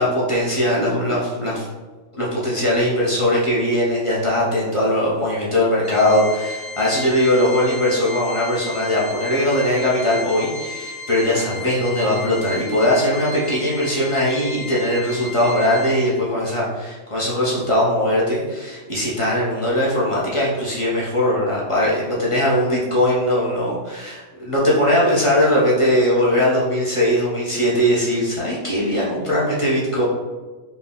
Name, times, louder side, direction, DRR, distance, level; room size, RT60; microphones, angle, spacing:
voice 1, 0.0-1.7 2.1-30.0, left 1 dB, 30° left, -7 dB, 0.7 m, -20 dB
Organ, 5.8-16.4, left 3 dB, 75° right, 1.0 m, -34 dB
4.2 x 2.3 x 3.7 m, 1.3 s
omnidirectional pair, 1.4 m